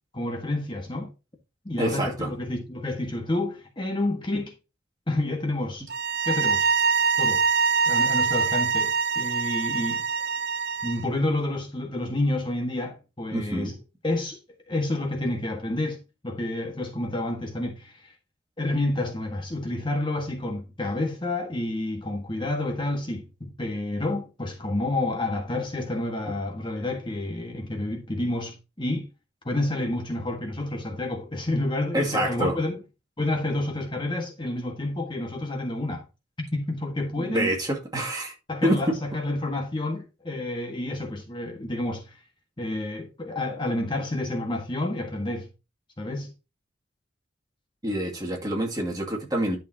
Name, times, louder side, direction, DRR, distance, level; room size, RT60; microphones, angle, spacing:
voice 1, 0.1-1.1 1.6-4.5 5.1-5.9 6.2-6.7 7.2-7.4 7.9-10.0 10.8-13.8 14.0-14.4 14.7-18.1 18.6-29.1 29.4-32.8 33.2-36.0 36.5-37.5 38.5-42.2 42.6-45.5 46.0-46.3, left 1 dB, 25° left, 1.6 m, -29 dB
voice 2, 1.8-2.3 13.3-13.7 31.9-32.6 37.2-38.3 38.6-39.0 47.8-49.6, right 1 dB, 20° right, 2.3 m, -26 dB
sound 1, 5.9-11.0, right 5 dB, 55° right, 0.7 m, -24 dB
11.0 x 6.6 x 2.8 m
head